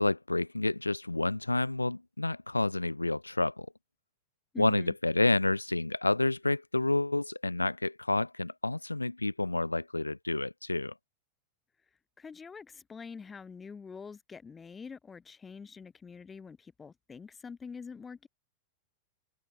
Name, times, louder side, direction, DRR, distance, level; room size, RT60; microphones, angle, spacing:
voice 1, 0.0-3.7 4.6-10.9, left 2 dB, 85° left, 0.4 m, -29 dB
voice 2, 4.5-4.9 12.2-18.3, left 5 dB, 15° left, 1.3 m, -45 dB
figure-of-eight pair, 90°, 0 cm